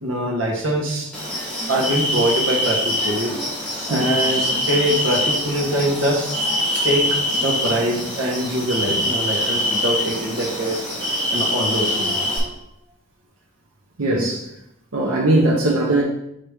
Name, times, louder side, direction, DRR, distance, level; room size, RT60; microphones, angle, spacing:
voice 1, 0.0-1.1 1.7-3.4 3.9-6.3 6.8-10.9 11.3-12.5, equal, 65° right, -2 dB, 1.5 m, -23 dB
sound 1, 1.1-12.4, left 1 dB, 5° left, 1.7 m, -24 dB
voice 2, 14.0-14.5 14.9-16.0, right 2 dB, 85° right, -3 dB, 0.9 m, -19 dB
6.4 x 3.0 x 4.9 m, 0.79 s
head